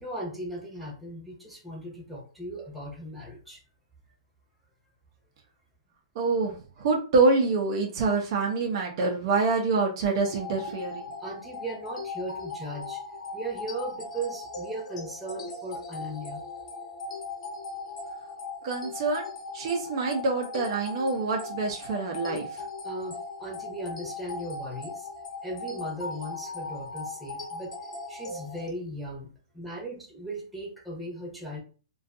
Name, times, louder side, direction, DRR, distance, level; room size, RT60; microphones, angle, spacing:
voice 1, 0.0-3.6 11.2-13.0 13.3-16.4 22.8-25.1 25.4-27.8 28.1-31.6, right 1 dB, ahead, -6 dB, 0.9 m, -37 dB
voice 2, 6.1-11.1 18.6-19.3 19.5-22.6, right 3 dB, 45° right, 1 dB, 0.5 m, -26 dB
sound 1, 10.2-28.7, left 3 dB, 85° left, 0.9 m, -39 dB
2.5 x 2.3 x 2.5 m, 0.37 s
hypercardioid pair, 150°, 3 cm